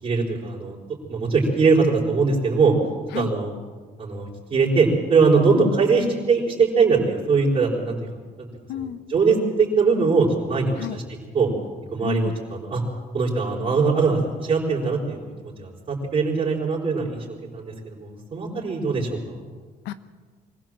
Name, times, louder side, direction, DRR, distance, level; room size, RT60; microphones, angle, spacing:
voice 1, 0.0-0.8 1.1-2.7 3.1-3.5 4.0-8.0 8.4-8.5 9.1-11.0 11.3-11.5 11.9-12.8 13.1-17.2 17.5-19.2, right 4 dB, 40° right, -6 dB, 4.7 m, -21 dB
voice 2, 8.7-9.0 10.7-11.0 12.0-12.4 19.8-19.9, left 12 dB, 85° left, 12 dB, 1.2 m, -31 dB
24.5 x 16.0 x 7.6 m, 1.5 s
cardioid pair, 110°, 17 cm